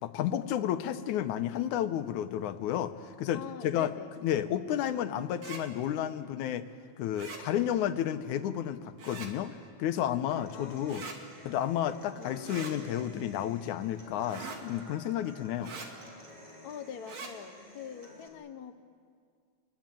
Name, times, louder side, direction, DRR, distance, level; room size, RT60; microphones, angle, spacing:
voice 1, 0.0-3.9 4.2-6.7 7.0-11.0 11.4-15.7, left 11 dB, 85° left, 10 dB, 2.4 m, -31 dB
voice 2, 3.3-4.1 10.5-11.2 12.2-12.4 16.6-18.8, left 8 dB, 55° left, 6 dB, 1.1 m, -44 dB
sound 1, 5.3-5.6 7.1-7.4 9.0-9.3 10.9-11.2 12.4-12.7 14.3-14.6 15.6-15.9 17.0-17.3, right 4 dB, 60° right, 3.7 m, -42 dB
Human voice / Acoustic guitar, 10.3-18.3, equal, 15° right, 3.2 m, -52 dB
27.0 x 21.5 x 9.1 m, 2.1 s
omnidirectional pair, 3.4 m